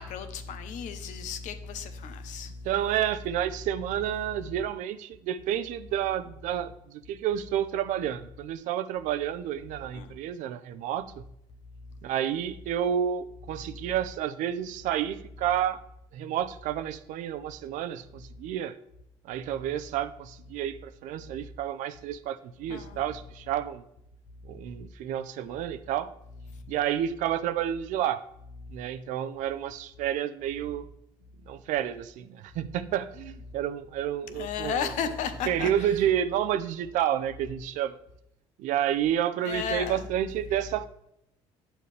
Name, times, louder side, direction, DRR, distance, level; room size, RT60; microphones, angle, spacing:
voice 1, 0.0-2.5 9.9-10.1 22.7-23.0 34.3-35.7 39.4-40.0, left 7 dB, 75° left, 9 dB, 0.9 m, -34 dB
voice 2, 2.6-11.2 12.0-15.8 16.1-18.8 19.3-23.8 24.4-26.1 26.7-28.2 28.7-30.9 31.5-34.9 35.5-38.0 38.6-40.9, right 10 dB, 75° right, 13 dB, 0.6 m, -30 dB
8.9 x 7.1 x 3.3 m, 0.79 s
supercardioid pair, 85°, 13 cm